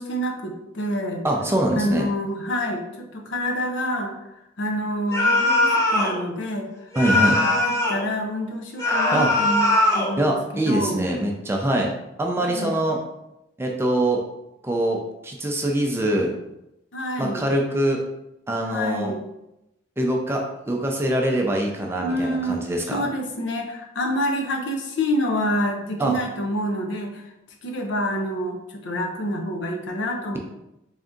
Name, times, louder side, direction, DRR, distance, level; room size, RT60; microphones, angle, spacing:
voice 1, 0.0-1.2 1.7-4.1 4.6-6.7 7.1-11.0 12.4-12.8 16.9-17.5 18.7-19.2 22.0-22.6 22.9-27.2 27.6-30.4, equal, 70° left, 2 dB, 0.6 m, -27 dB
voice 2, 1.2-2.1 7.0-7.4 9.1-9.3 10.2-11.9 12.2-13.0 13.6-14.2 14.6-16.3 17.2-18.0 18.5-19.1 20.0-23.1 26.0-26.1, right 1 dB, 15° right, 1 dB, 0.4 m, -23 dB
sound 1, 5.1-6.2 6.9-8.1 8.8-10.1, left 1 dB, 15° left, 0.7 m, -20 dB
3.4 x 2.6 x 3.6 m, 0.89 s
head